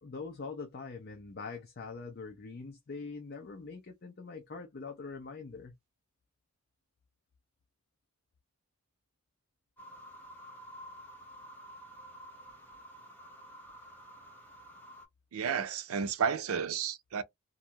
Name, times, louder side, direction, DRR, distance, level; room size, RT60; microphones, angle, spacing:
voice 1, 0.0-5.7, left 4 dB, 50° left, 0.5 m, -43 dB
sound 1, 9.8-15.0, equal, 10° left, 0.8 m, -51 dB
voice 2, 15.3-17.2, right 6 dB, 90° right, 0.4 m, -32 dB
2.5 x 2.2 x 2.8 m
head